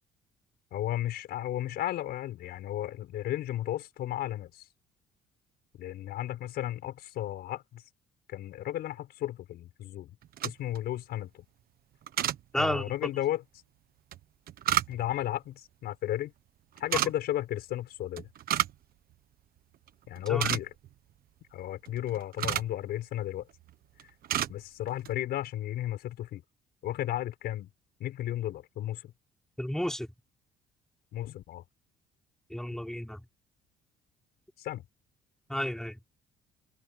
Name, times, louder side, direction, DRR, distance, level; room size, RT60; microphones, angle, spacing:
voice 1, 0.7-4.7 5.8-7.8 8.3-10.1 10.4-11.4 12.5-13.4 14.9-16.3 16.8-18.3 20.1-20.7 21.5-23.5 24.5-26.4 26.8-27.7 28.0-29.1 31.1-31.6 34.6-34.8, left 13 dB, 70° left, 5.4 m, -34 dB
sound 1, 10.2-10.8 12.1-12.4 14.1-15.2 16.8-17.1 18.2-18.8 19.1-19.2 19.7-19.9 20.2-20.9 21.8-22.8 23.5-23.7 24.0-24.5 24.9-25.1, right 11 dB, 60° right, 1.3 m, -31 dB
voice 2, 12.5-12.9 20.3-20.5 29.6-30.1 32.5-33.2 35.5-36.0, equal, 5° left, 5.9 m, -32 dB
cardioid pair, 110°, 17 cm